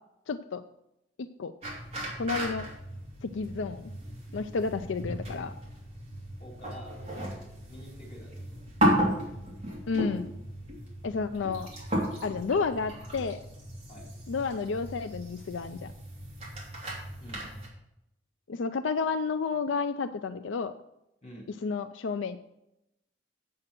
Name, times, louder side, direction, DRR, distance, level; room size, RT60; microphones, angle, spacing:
voice 1, 0.3-0.6 1.4-1.5 2.2-2.7 3.2-3.9 4.3-5.5 9.9-10.3 11.0-11.7 12.2-13.4 14.3-15.9 18.5-20.7 21.6-22.4, left 4 dB, 85° left, 9 dB, 0.5 m, -31 dB
sound 1, 1.6-17.7, equal, 30° right, 2.8 m, -34 dB
voice 2, 6.4-7.0 7.7-8.6 13.9-14.1 17.2-17.5 21.2-21.5, equal, 35° left, -3 dB, 4.3 m, -48 dB
7.8 x 7.7 x 5.9 m, 0.86 s
head